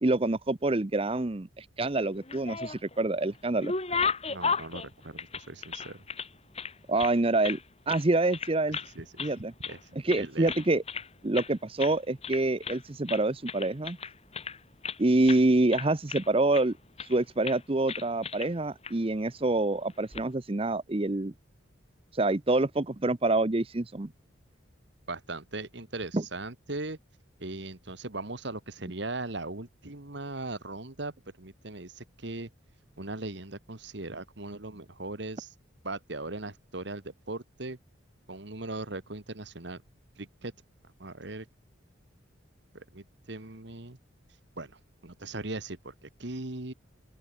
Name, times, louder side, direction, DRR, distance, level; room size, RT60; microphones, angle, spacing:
voice 1, 0.0-3.7 6.9-7.6 7.9-8.8 9.2-9.5 10.0-10.8 11.2-14.0 15.0-16.7 17.0-21.3 22.1-24.1 26.1-26.2, right 2 dB, 30° right, 0.7 m, -26 dB
sound 1, 2.1-3.0 3.3-6.3 6.5-7.6 7.9-8.1 8.3-8.9 9.2-9.8 10.1-11.1 11.3-11.5 11.8-12.0 12.2-12.8 13.1-15.0 15.3-15.4 15.7-16.6 17.0-17.2 17.4-17.6 17.9-18.5 18.8-18.9 19.9-20.2, left 5 dB, 30° left, 3.9 m, -34 dB
voice 2, 4.3-6.1 9.0-9.1 9.7-10.5 25.1-27.0 27.4-32.5 33.0-35.5 35.8-37.8 38.3-39.8 40.2-40.5 41.0-41.5 42.7-44.0 44.6-46.7, right 2 dB, 60° right, 1.8 m, -39 dB
open air
head